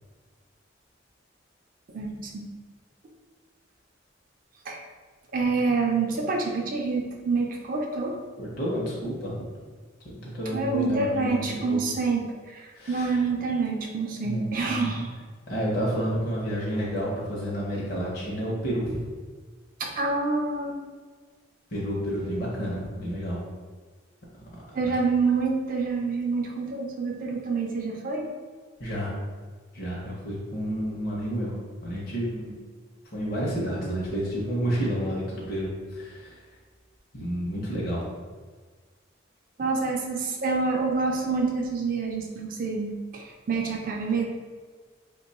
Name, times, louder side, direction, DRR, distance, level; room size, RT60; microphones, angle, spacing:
voice 1, 1.9-2.4 4.7-4.8 5.3-8.2 10.5-12.2 12.5-15.1 19.8-20.8 24.7-28.3 39.6-44.2, right 4 dB, 45° right, 1 dB, 0.4 m, -27 dB
voice 2, 8.4-9.3 10.0-11.8 12.8-13.2 14.2-14.9 15.5-19.0 21.7-23.4 28.8-29.1 29.7-31.6 31.8-32.6 33.1-36.4 37.1-38.0, equal, 50° left, -5 dB, 0.7 m, -30 dB
2.9 x 2.2 x 4.0 m, 1.5 s
head